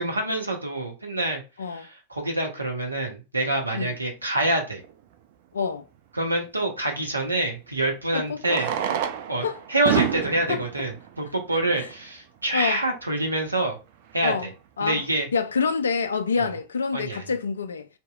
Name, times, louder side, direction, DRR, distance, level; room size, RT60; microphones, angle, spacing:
voice 1, 0.0-1.4 1.7-4.8 6.1-8.7 9.3-13.8 14.1-14.3 14.8-15.3 16.4-16.5 16.9-17.2, right 2 dB, 80° right, 0.7 m, -26 dB
voice 2, 1.6-1.9 3.7-4.0 5.5-5.9 8.1-8.7 9.4-9.6 9.9-10.1 10.5-10.6 11.8-11.9 12.5-12.8 14.2-14.5 14.8-15.0 15.3-17.9, left 5 dB, 70° left, 0.3 m, -27 dB
Fireworks, 4.8-4.9 7.2-7.3 8.4-12.1 12.9-13.0 13.2-13.3 13.5-13.6 14.1-14.3, right 10 dB, 50° right, 0.3 m, -29 dB
2.8 x 2.7 x 2.3 m
figure-of-eight pair, 90°, 0 cm